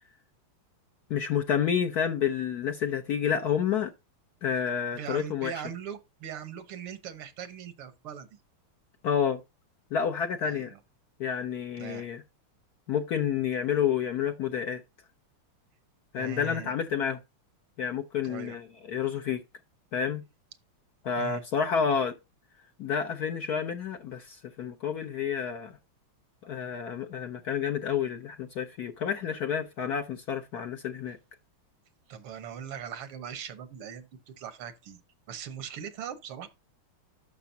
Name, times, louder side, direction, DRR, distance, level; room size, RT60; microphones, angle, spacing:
voice 1, 1.1-3.9 4.4-5.5 9.0-9.4 9.9-10.7 11.2-12.2 12.9-14.8 16.1-17.2 17.8-19.4 19.9-20.2 21.0-22.1 22.8-25.7 26.4-31.2, left 7 dB, 60° left, 1.0 m, -29 dB
voice 2, 4.9-8.4 10.4-10.8 11.8-12.1 16.2-16.7 18.2-18.6 21.2-21.4 32.1-35.0 35.3-36.5, right 8 dB, 80° right, 2.0 m, -40 dB
11.5 x 6.1 x 2.7 m
omnidirectional pair, 2.4 m